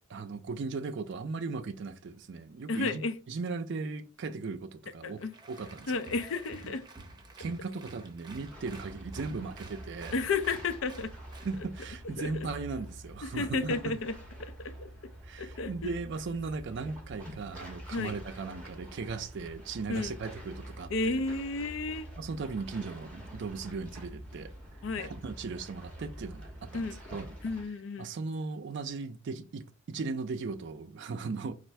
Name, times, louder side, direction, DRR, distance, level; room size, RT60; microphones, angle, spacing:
voice 1, 0.0-5.9 6.6-6.7 7.4-10.1 11.4-13.9 15.2-21.2 22.2-24.5 25.0-27.3 28.0-31.5, right 4 dB, 60° right, 0.4 m, -37 dB
voice 2, 2.7-3.1 5.0-5.4 5.9-6.8 10.1-11.1 12.2-12.3 13.2-14.1 14.4-14.9 15.4-15.9 17.9-18.2 19.9-20.1 20.9-22.1 24.8-25.1 26.7-27.0 27.4-28.1, left 3 dB, 65° left, 0.5 m, -32 dB
Applause, 5.3-12.0, right 2 dB, 20° right, 0.8 m, -50 dB
sound 1, 8.5-27.7, right 1 dB, 5° left, 1.4 m, -47 dB
4.1 x 2.4 x 4.5 m
head